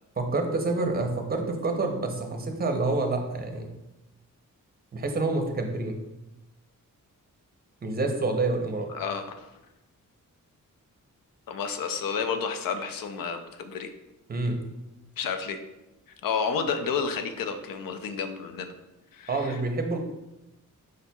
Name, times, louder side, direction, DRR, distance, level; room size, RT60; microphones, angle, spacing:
voice 1, 0.2-3.7 4.9-6.0 7.8-8.9 14.3-14.6 19.3-20.0, right 3 dB, 30° right, 4 dB, 0.6 m, -28 dB
voice 2, 8.9-9.5 11.5-13.9 15.2-15.6 16.2-18.7 19.1-19.6, left 6 dB, 80° left, 7 dB, 0.5 m, -31 dB
4.9 x 4.2 x 2.2 m, 0.98 s
wide cardioid pair, 120°, 33 cm